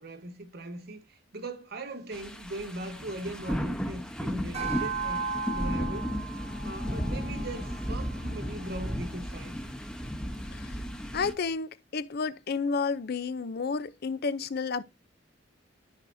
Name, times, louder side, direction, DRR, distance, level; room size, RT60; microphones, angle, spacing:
voice 1, 0.0-6.1 6.6-9.6, right 1 dB, 60° right, 1.1 m, -39 dB
sound 1, 2.1-11.3, equal, 5° left, 0.8 m, -34 dB
sound 2, 4.5-9.1, right 4 dB, 35° right, 1.3 m, -37 dB
voice 2, 11.1-14.8, left 5 dB, 60° left, 0.5 m, -31 dB
13.5 x 4.8 x 2.6 m
head